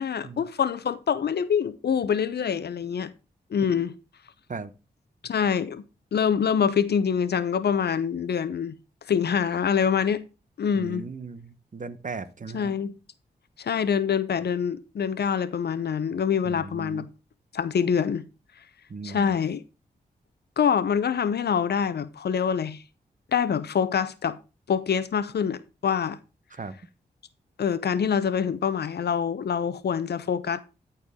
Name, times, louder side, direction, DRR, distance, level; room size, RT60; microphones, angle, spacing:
voice 1, 0.0-3.1 3.5-3.9 5.2-5.8 6.1-8.7 9.1-10.2 10.6-11.1 12.5-12.9 13.6-17.1 17.5-18.3 19.0-19.6 20.6-22.8 23.3-24.4 24.7-26.2 27.6-30.6, left 7 dB, 70° left, 0.8 m, -25 dB
voice 2, 10.7-12.7 16.4-17.1 18.9-19.3 26.5-26.7, right 4 dB, 45° right, 1.1 m, -37 dB
13.5 x 4.5 x 3.7 m
cardioid pair, 50°, 18 cm